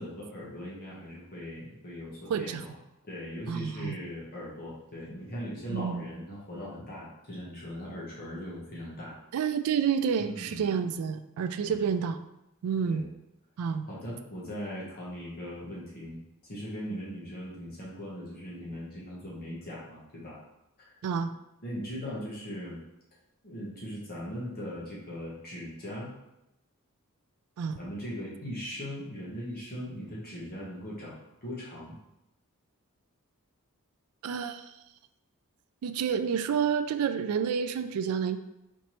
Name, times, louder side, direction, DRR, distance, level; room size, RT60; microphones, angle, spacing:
voice 1, 0.0-2.7 3.1-9.2 10.2-10.7 11.6-11.8 12.9-13.1 13.9-16.2 16.4-20.4 20.8-20.9 21.6-22.8 23.4-26.1 27.8-31.9, equal, 45° left, -6 dB, 1.0 m, -39 dB
voice 2, 2.3-2.6 3.5-4.0 5.7-6.0 9.3-12.2 12.6-13.0 13.6-13.8 21.0-21.3 27.6-27.8 34.2-34.6 35.8-38.4, right 7 dB, 80° right, 11 dB, 0.3 m, -29 dB
4.3 x 2.9 x 3.0 m, 0.88 s
head